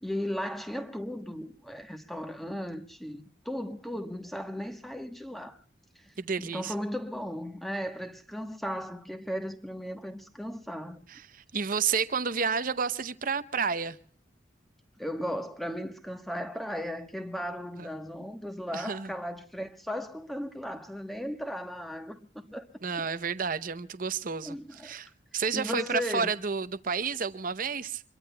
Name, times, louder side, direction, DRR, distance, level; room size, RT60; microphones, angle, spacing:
voice 1, 0.0-5.6 6.4-11.1 15.0-22.7 24.4-25.0 25.5-26.3, equal, ahead, 1.2 m, -36 dB
voice 2, 6.2-6.7 11.1-14.0 17.8-17.9 18.7-19.1 22.8-28.0, right 5 dB, 45° right, 0.7 m, -31 dB
26.5 x 22.5 x 2.2 m
head